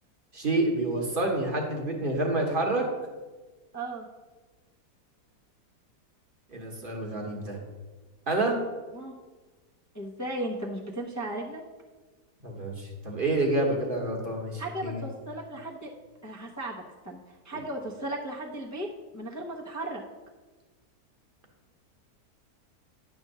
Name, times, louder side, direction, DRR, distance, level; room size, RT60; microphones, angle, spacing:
voice 1, 0.3-2.9 6.5-7.6 8.3-8.6 12.4-15.0 17.5-17.6, right 2 dB, 35° right, 0 dB, 1.2 m, -28 dB
voice 2, 3.7-4.1 8.9-9.1 9.9-11.6 14.6-15.9 16.2-18.9 19.1-20.0, right 1 dB, 20° left, -2 dB, 0.5 m, -36 dB
10.0 x 3.5 x 6.6 m, 1.3 s
omnidirectional pair, 1.8 m